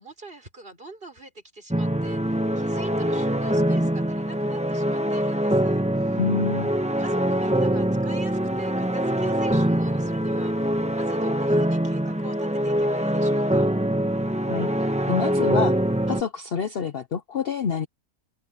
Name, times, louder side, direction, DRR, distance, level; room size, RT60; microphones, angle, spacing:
voice 1, 0.0-6.2 7.0-13.7, right 2 dB, 35° right, 5.1 m, -44 dB
sound 1, 1.7-16.2, right 1 dB, 5° right, 1.0 m, -24 dB
voice 2, 6.2-6.7 14.5-14.7 15.1-15.8 16.1-17.9, left 6 dB, 50° left, 0.8 m, -27 dB
omnidirectional pair, 1.6 m